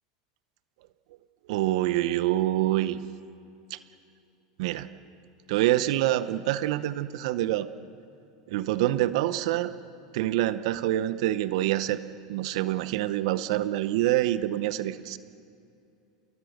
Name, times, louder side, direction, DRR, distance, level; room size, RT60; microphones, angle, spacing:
voice 1, 1.5-3.0 3.7-3.8 4.6-4.9 5.5-7.7 8.5-9.7 10.1-12.0 12.3-15.2, right 14 dB, 70° right, 13 dB, 0.8 m, -26 dB
27.5 x 20.5 x 6.5 m, 2.6 s
supercardioid pair, 115°, 3 cm